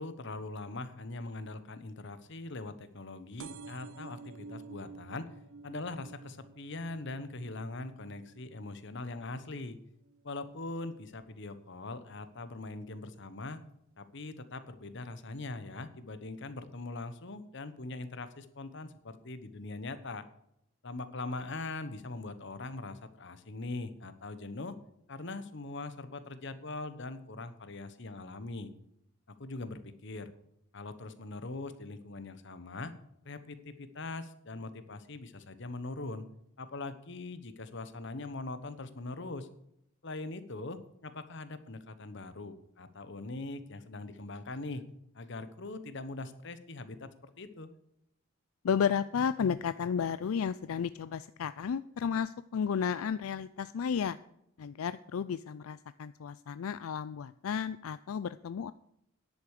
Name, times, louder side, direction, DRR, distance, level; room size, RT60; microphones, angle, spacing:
voice 1, 0.0-5.3 5.6-9.8 10.2-13.6 14.0-20.2 20.8-24.7 25.1-28.7 29.4-30.3 30.7-32.9 33.2-36.3 36.6-39.5 40.0-44.8 45.1-47.7, left 2 dB, 60° left, 12 dB, 1.1 m, -41 dB
sound 1, 3.4-10.6 11.1-11.6 12.4-12.5 12.7-12.8 13.1-13.2, right 4 dB, 75° right, 0.6 m, -51 dB
voice 2, 48.6-54.2 54.6-58.7, left 7 dB, 85° left, 15 dB, 0.4 m, -33 dB
10.5 x 8.1 x 6.5 m, 0.77 s
head